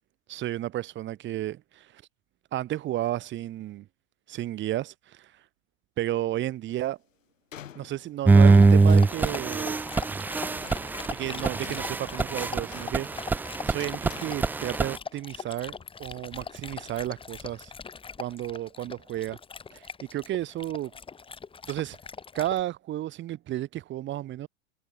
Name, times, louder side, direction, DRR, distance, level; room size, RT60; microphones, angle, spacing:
voice 1, 0.3-2.0 2.5-3.9 4.3-5.3 6.0-7.0 7.7-9.8 11.1-13.1 13.7-17.7 18.2-19.4 19.7-20.9 21.6-22.0 22.3-24.5, right 14 dB, 30° right, 2.6 m, -32 dB
sound 1, 6.7-6.9 7.5-9.4 9.7-9.9 10.3-14.2, left 10 dB, 80° left, 6.9 m, -49 dB
sound 2, 8.3-15.0, right 4 dB, 5° right, 0.4 m, -22 dB
Dog, 8.4-22.6, left 5 dB, 15° left, 3.2 m, -42 dB
hypercardioid pair, 125°, 38 cm